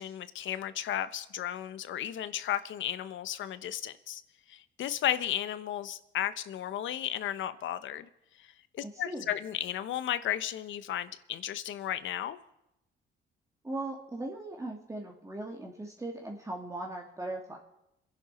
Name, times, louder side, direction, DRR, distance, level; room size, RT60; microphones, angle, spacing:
voice 1, 0.0-4.2 4.5-8.1 8.4-12.4, left 11 dB, 75° left, 13 dB, 1.0 m, -34 dB
voice 2, 8.8-9.3 13.6-17.6, right 2 dB, 15° right, 0 dB, 2.2 m, -39 dB
27.0 x 11.0 x 4.3 m, 0.86 s
cardioid pair, 90°, 20 cm